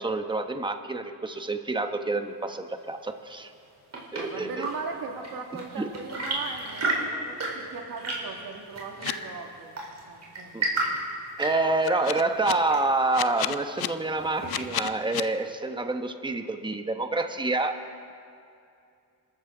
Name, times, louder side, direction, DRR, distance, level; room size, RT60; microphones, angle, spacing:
voice 1, 0.0-3.5 4.1-4.7 5.8-5.9 10.5-10.7 11.4-17.8, right 2 dB, 10° right, 7 dB, 1.1 m, -28 dB
Chirp tweet / Engine / Tap, 3.5-15.0, right 2 dB, 40° right, 4.3 m, -34 dB
voice 2, 4.2-9.7 10.1-10.9, right 4 dB, 60° right, 2 dB, 2.3 m, -39 dB
sound 1, 9.0-9.1 11.8-12.5 13.1-13.9 14.5-15.2, left 13 dB, 70° left, 0.6 m, -30 dB
26.0 x 13.5 x 3.9 m, 2.5 s
cardioid pair, 105°, 39 cm